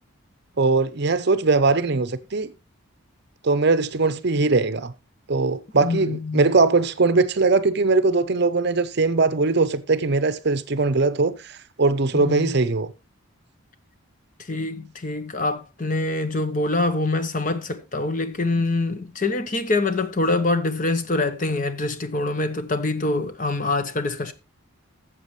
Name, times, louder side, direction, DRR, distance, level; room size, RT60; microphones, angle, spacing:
voice 1, 0.6-2.5 3.4-4.9 5.3-11.5 11.8-12.9, right 3 dB, 50° right, 0.6 m, -20 dB
voice 2, 5.8-6.4 12.1-12.5 14.5-24.3, left 2 dB, 35° left, 0.9 m, -25 dB
13.5 x 7.4 x 3.2 m
head